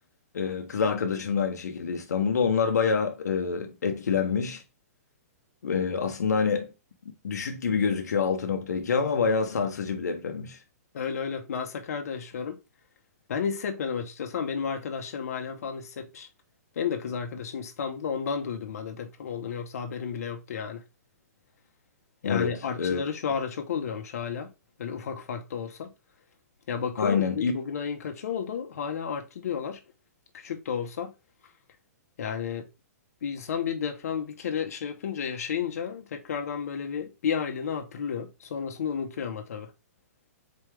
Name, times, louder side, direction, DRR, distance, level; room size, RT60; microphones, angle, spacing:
voice 1, 0.3-4.6 5.6-6.7 7.2-10.6 22.2-23.0 27.0-27.5, left 5 dB, 90° left, 1.0 m, -27 dB
voice 2, 10.9-12.6 13.3-16.3 16.8-20.8 22.2-24.5 24.8-25.9 26.7-29.8 30.3-31.1 32.2-32.7 33.2-39.7, left 7 dB, 65° left, 1.0 m, -32 dB
4.4 x 3.4 x 3.3 m
hypercardioid pair, 160°, 9 cm